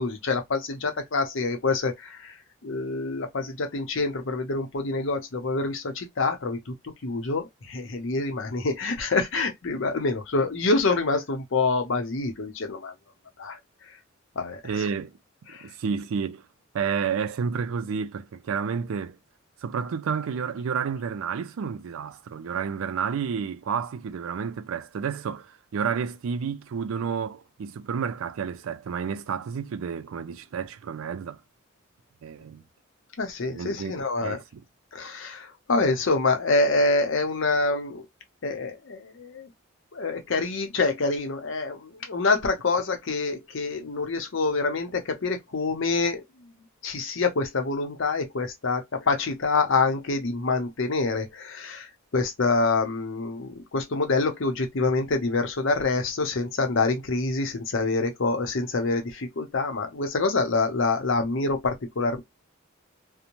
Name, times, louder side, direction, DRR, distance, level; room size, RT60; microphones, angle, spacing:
voice 1, 0.0-2.3 2.6-6.7 7.0-12.9 13.4-13.6 14.4-14.9 15.5-15.6 33.2-34.4 34.9-38.1 38.4-39.5 39.9-46.2 46.8-51.9 52.1-62.2, left 3 dB, 65° left, 0.7 m, -26 dB
voice 2, 14.6-15.2 15.6-16.4 16.7-19.2 19.6-31.4 32.2-32.6 33.5-33.9 34.2-34.6, right 6 dB, 75° right, 0.4 m, -30 dB
2.6 x 2.1 x 2.9 m
head